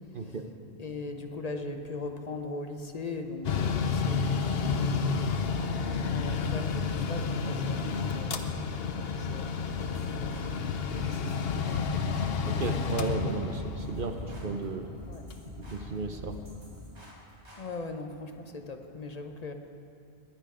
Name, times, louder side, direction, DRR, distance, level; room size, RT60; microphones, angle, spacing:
voice 1, 0.8-5.2 6.1-12.2 15.1-15.3 17.6-19.5, left 3 dB, 40° left, 5 dB, 0.9 m, -40 dB
Mechanical fan, 3.4-16.8, left 5 dB, 65° left, 1.0 m, -31 dB
sound 1, 9.7-17.6, equal, 85° right, 4.3 m, -46 dB
voice 2, 12.5-14.9 15.6-16.4, right 4 dB, 55° right, 6 dB, 0.8 m, -34 dB
21.0 x 9.0 x 5.0 m, 2.5 s
omnidirectional pair, 1.1 m